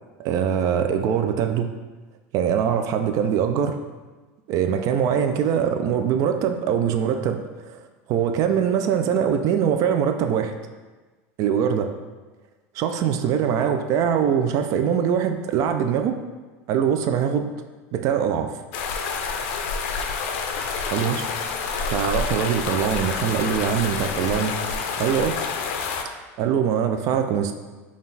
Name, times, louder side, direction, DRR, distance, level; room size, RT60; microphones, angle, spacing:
voice 1, 0.2-1.7 2.3-3.8 4.5-7.4 8.1-10.5 11.4-11.9 12.8-16.2 16.7-17.5 17.9-18.5 20.9-21.3 21.9-24.6 25.0-25.4 26.4-27.5, right 8 dB, 50° right, 7 dB, 0.3 m, -22 dB
sound 1, 18.7-26.0, left 5 dB, 70° left, 0.4 m, -28 dB
3.7 x 2.4 x 3.9 m, 1.3 s
supercardioid pair, 105°, 7 cm